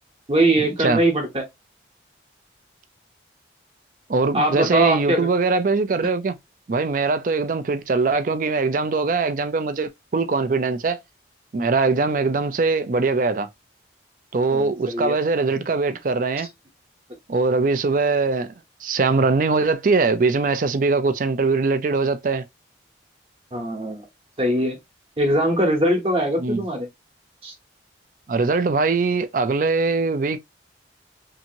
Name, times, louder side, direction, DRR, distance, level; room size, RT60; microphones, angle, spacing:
voice 1, 0.3-1.4 4.3-5.3 14.5-15.2 23.5-24.0 24.4-24.8 25.2-26.9 27.4-27.5, right 1 dB, 30° right, 0.9 m, -21 dB
voice 2, 4.1-6.4 6.7-11.0 11.5-13.5 14.3-16.5 17.3-18.5 18.8-22.4 26.4-26.6 28.3-30.4, right 4 dB, 45° right, 0.4 m, -21 dB
2.7 x 2.6 x 2.7 m
head